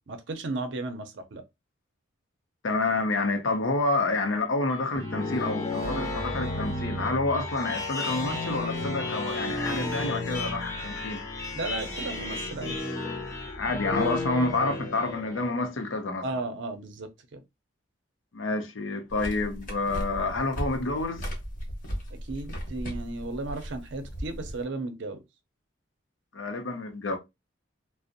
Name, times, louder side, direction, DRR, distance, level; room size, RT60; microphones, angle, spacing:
voice 1, 0.1-1.4 11.5-12.8 16.2-17.4 22.1-25.2, right 2 dB, 70° right, 0.5 m, -35 dB
voice 2, 2.6-11.2 13.5-16.3 18.3-21.3 26.3-27.2, left 3 dB, 90° left, 0.6 m, -28 dB
sound 1, 4.7-15.5, left 2 dB, 15° left, 0.5 m, -32 dB
sound 2, 19.1-24.6, equal, 45° left, 0.9 m, -36 dB
2.5 x 2.0 x 2.5 m
head